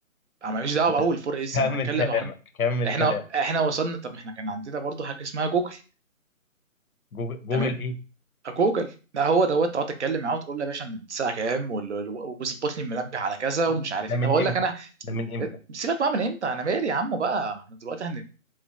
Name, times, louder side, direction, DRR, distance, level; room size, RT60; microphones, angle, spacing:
voice 1, 0.4-2.3 2.8-5.8 7.5-7.7 8.4-14.9 15.4-18.2, right 4 dB, 55° right, 8 dB, 0.5 m, -27 dB
voice 2, 1.5-3.2 7.1-8.0 14.1-14.5 15.1-15.5, left 2 dB, 80° left, 8 dB, 0.7 m, -27 dB
2.9 x 2.1 x 2.4 m, 0.35 s
figure-of-eight pair, 150°, 42 cm